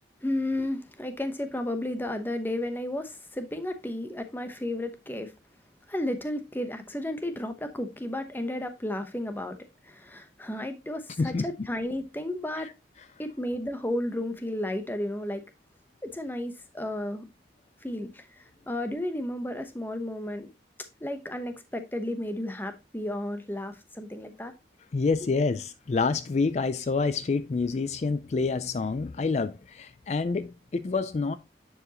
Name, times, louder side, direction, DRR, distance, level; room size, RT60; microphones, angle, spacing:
voice 1, 0.2-5.3 5.9-12.7 13.2-15.4 16.0-17.3 17.8-20.5 21.0-24.5 25.2-25.3, left 1 dB, 10° left, 0.8 m, -33 dB
voice 2, 24.9-31.4, left 4 dB, 40° left, 0.3 m, -27 dB
9.6 x 4.8 x 2.9 m
head